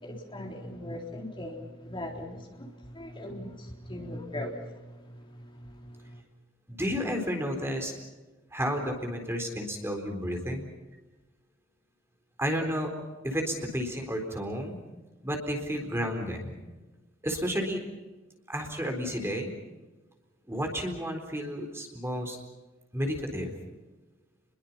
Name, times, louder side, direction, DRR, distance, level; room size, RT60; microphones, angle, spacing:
voice 1, 0.0-2.7 2.9-4.7, left 1 dB, 25° left, 3.8 m, -39 dB
voice 2, 6.7-7.9 8.5-10.7 12.4-12.9 13.2-14.8 15.2-16.5 17.2-17.8 18.5-19.5 20.5-22.4 22.9-23.5, equal, 15° right, 4.0 m, -31 dB
30.0 x 22.0 x 5.8 m
head